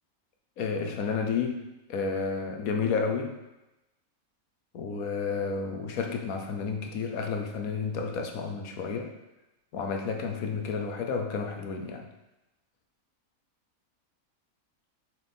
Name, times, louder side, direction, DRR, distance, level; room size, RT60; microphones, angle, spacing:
voice 1, 0.6-3.4 4.7-9.1 9.7-12.0, left 5 dB, 75° left, 3 dB, 1.2 m, -31 dB
7.4 x 4.3 x 3.5 m, 0.99 s
omnidirectional pair, 1.5 m